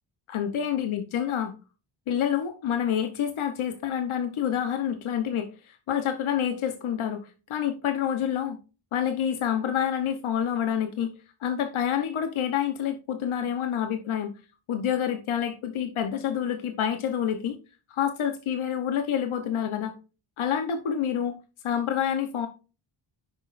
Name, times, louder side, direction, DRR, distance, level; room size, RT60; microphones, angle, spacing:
voice 1, 0.3-1.5 2.1-8.6 8.9-11.1 11.4-14.3 14.7-17.5 17.9-19.9 20.4-21.4 21.6-22.5, left 9 dB, 90° left, 1.0 m, -28 dB
9.8 x 6.1 x 2.5 m
wide cardioid pair, 145°, 47 cm